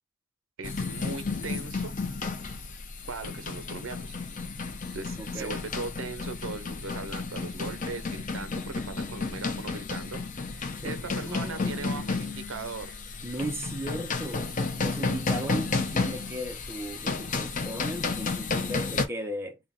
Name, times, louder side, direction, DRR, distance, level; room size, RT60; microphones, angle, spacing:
sound 1, 0.6-19.1, left 4 dB, 40° left, 0.6 m, -32 dB
voice 1, 0.6-1.9 3.1-4.2 4.9-10.2 10.5-12.9, right 4 dB, 65° right, 0.6 m, -39 dB
voice 2, 5.2-5.6 10.8-12.1 13.2-14.5 14.8-19.6, right 1 dB, 10° right, 0.7 m, -37 dB
3.7 x 2.2 x 4.1 m
head